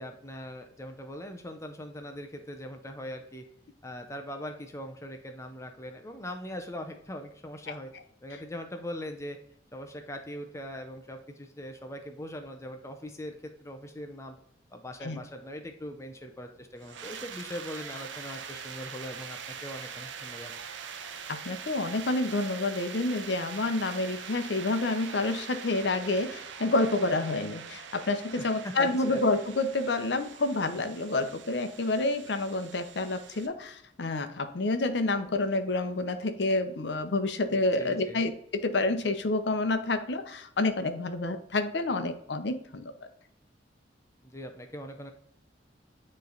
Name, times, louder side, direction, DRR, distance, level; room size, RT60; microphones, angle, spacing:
voice 1, 0.0-3.5 3.8-7.9 8.2-9.4 9.7-14.4 14.7-20.5 28.4-29.2 37.8-38.2 44.2-45.1, equal, 15° left, 5 dB, 0.6 m, -41 dB
sound 1, 16.8-33.5, right 6 dB, 90° right, 0.6 m, -43 dB
voice 2, 21.3-42.9, left 2 dB, 70° left, 9 dB, 0.7 m, -29 dB
9.5 x 3.2 x 3.9 m, 0.70 s
head